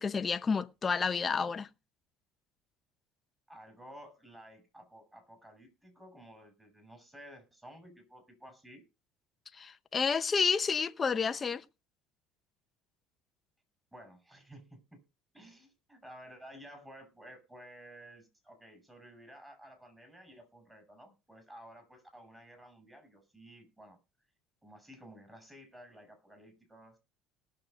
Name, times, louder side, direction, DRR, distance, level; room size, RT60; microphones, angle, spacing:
voice 1, 0.0-1.7 9.5-11.6, left 5 dB, 30° left, 0.8 m, -30 dB
voice 2, 3.5-8.8 13.9-15.0 15.3-24.0 24.6-27.0, equal, 10° right, 6.1 m, -53 dB
18.5 x 6.5 x 5.2 m
supercardioid pair, 105°, 0 cm